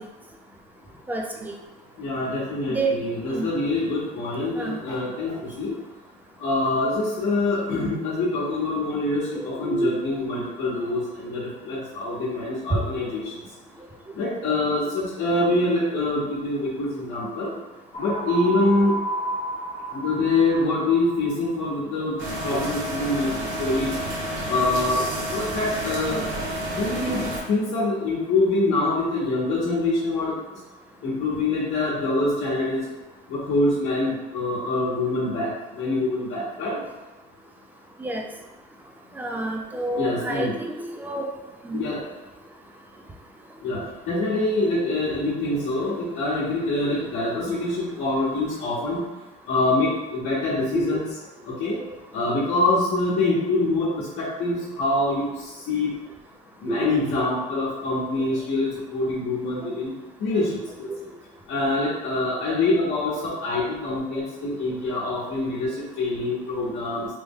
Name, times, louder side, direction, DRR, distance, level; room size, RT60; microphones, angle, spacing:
voice 1, 1.1-1.6 2.7-2.9 3.3-3.5 4.6-4.8 6.8-6.9 9.4-9.9 12.7-12.8 38.0-38.2 39.2-41.3 41.6-41.9 50.7-50.9 56.7-57.0 60.9-61.0, right 2 dB, 10° right, 1 dB, 0.3 m, -28 dB
voice 2, 2.0-5.7 6.4-13.3 14.1-17.5 18.0-19.0 19.9-22.2 22.4-23.3 23.6-23.9 24.5-25.0 25.3-26.2 26.7-30.4 31.0-32.8 33.3-36.8 40.0-40.5 41.7-42.0 43.6-43.8 44.1-49.0 49.5-51.1 51.5-51.8 52.1-55.9 56.6-59.9 60.2-60.5 60.8-60.9 61.5-67.1, left 2 dB, 60° left, -9 dB, 0.9 m, -25 dB
sound 1, 17.9-21.5, right 1 dB, 30° left, 0.7 m, -31 dB
sound 2, 22.2-27.4, right 1 dB, 65° right, 0.9 m, -30 dB
3.2 x 2.2 x 3.5 m, 1.1 s
cardioid pair, 145°, 21 cm